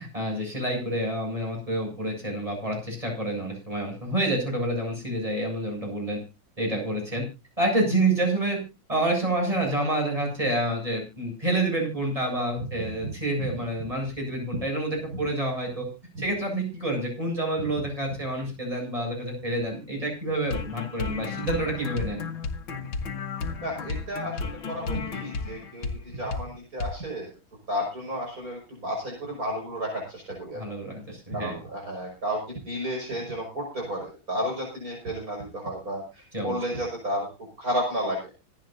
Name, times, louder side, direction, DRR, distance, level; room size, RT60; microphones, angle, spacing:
voice 1, 0.0-6.2 6.6-7.2 7.6-8.6 8.9-15.9 16.2-22.2 30.5-31.5 36.3-36.5, right 1 dB, 15° right, 1 dB, 8.1 m, -28 dB
voice 2, 12.8-13.1 13.4-13.5 14.5-14.6 16.2-16.3 23.6-27.3 27.7-30.6 31.3-37.3 37.6-38.3, equal, 45° right, 0 dB, 6.0 m, -32 dB
sound 1, 20.5-26.0 26.3-26.5 26.8-27.0, left 4 dB, 80° left, 2.3 m, -33 dB
26.0 x 9.4 x 2.7 m, 0.29 s
omnidirectional pair, 2.2 m